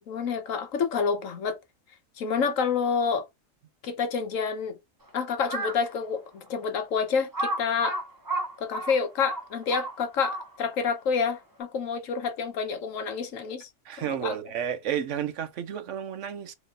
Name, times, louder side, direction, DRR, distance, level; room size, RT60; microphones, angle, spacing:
voice 1, 0.1-1.6 2.2-3.2 3.8-4.8 5.1-8.0 8.6-13.7 14.0-14.4, left 6 dB, 80° left, 1.3 m, -28 dB
Crow, 5.4-5.9 6.5-6.6 7.3-10.7, right 2 dB, 20° right, 0.8 m, -32 dB
voice 2, 13.9-16.5, right 9 dB, 70° right, 1.0 m, -31 dB
4.1 x 3.0 x 3.7 m
omnidirectional pair, 1.3 m